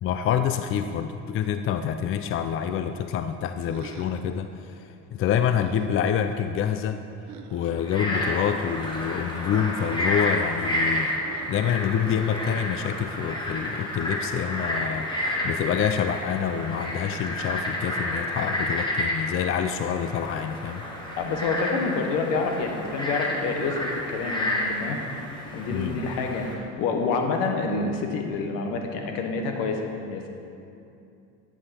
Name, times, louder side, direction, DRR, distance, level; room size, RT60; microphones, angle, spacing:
voice 1, 0.0-4.8 5.1-7.0 7.5-11.1 11.5-20.8 25.7-26.0, left 8 dB, 40° left, 9 dB, 0.5 m, -27 dB
sound 1, 3.6-4.3 5.5-5.9 7.3-7.7 9.9-10.3 11.1-11.7, right 7 dB, 60° right, 0.8 m, -45 dB
Frog, 7.8-26.5, left 1 dB, 15° left, 2.0 m, -30 dB
voice 2, 21.2-25.0 25.5-30.3, left 4 dB, 80° left, 3 dB, 1.4 m, -28 dB
11.0 x 8.3 x 4.3 m, 2.7 s
supercardioid pair, 100°, 33 cm